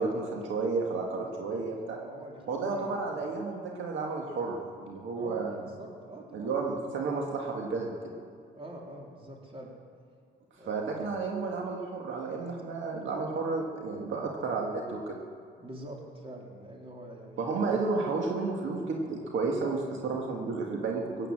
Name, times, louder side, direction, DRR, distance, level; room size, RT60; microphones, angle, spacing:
voice 1, 0.0-2.0 2.5-5.6 6.3-8.1 10.7-15.2 17.4-21.3, right 4 dB, 75° right, 0 dB, 1.8 m, -32 dB
voice 2, 1.2-3.2 5.2-6.6 8.5-9.7 10.5-11.2 12.6-12.8 15.6-17.8, right 1 dB, 30° right, -1 dB, 3.4 m, -46 dB
17.5 x 8.8 x 7.4 m, 2.3 s
cardioid pair, 90°, 20 cm